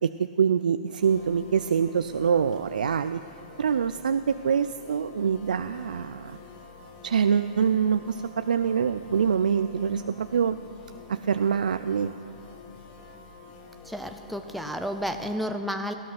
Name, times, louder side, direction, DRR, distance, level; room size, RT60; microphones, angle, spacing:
voice 1, 0.0-3.2 3.6-6.4 7.0-10.6 11.1-12.1, right 7 dB, 80° right, 11 dB, 0.4 m, -25 dB
sound 1, 1.0-15.4, left 4 dB, 35° left, 1.8 m, -48 dB
voice 2, 13.8-15.9, equal, ahead, 5 dB, 0.5 m, -31 dB
18.5 x 13.0 x 5.9 m, 2.7 s
hypercardioid pair, 130°, 4 cm